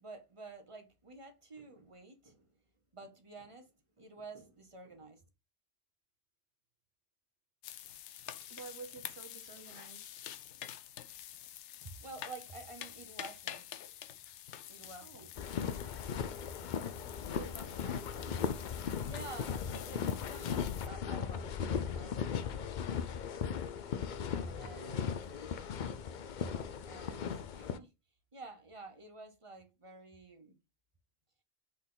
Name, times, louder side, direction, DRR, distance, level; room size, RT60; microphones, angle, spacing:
voice 1, 0.0-2.5 2.9-3.7 4.0-5.2 12.0-13.8 14.7-15.3 17.8-18.0 19.0-21.5 21.7-22.7 24.3-25.4 26.4-26.5 26.9-27.3 27.5-27.9 28.3-30.6, right 3 dB, 30° right, 1.0 m, -50 dB
sound 1, 7.6-20.9, left 11 dB, 80° left, 0.9 m, -48 dB
voice 2, 8.4-10.2 15.0-15.3 17.0-18.5, right 5 dB, 65° right, 1.2 m, -51 dB
sound 2, 15.4-27.8, left 7 dB, 55° left, 0.6 m, -37 dB
5.8 x 4.2 x 3.9 m
omnidirectional pair, 1.2 m